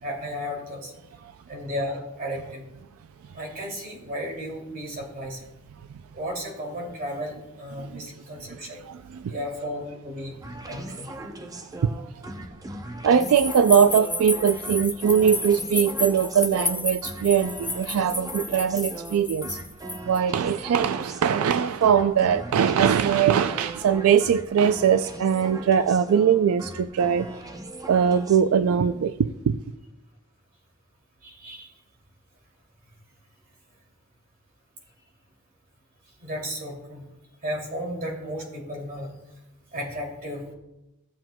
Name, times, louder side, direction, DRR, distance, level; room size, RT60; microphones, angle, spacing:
voice 1, 0.0-0.9 1.5-2.6 3.3-5.4 6.1-8.8 9.3-10.3 10.7-11.1 31.2-31.7 36.2-37.0 37.4-39.1 39.7-40.5, equal, 45° right, 2.7 m, -34 dB
voice 2, 8.9-9.3 11.8-11.9 13.0-19.6 20.0-27.3 27.9-29.6, right 7 dB, 80° right, 0.3 m, -21 dB
sound 1, 10.4-28.4, right 1 dB, 15° right, 0.6 m, -39 dB
sound 2, 13.2-20.2, left 2 dB, 10° left, 0.8 m, -32 dB
15.5 x 7.4 x 2.2 m
head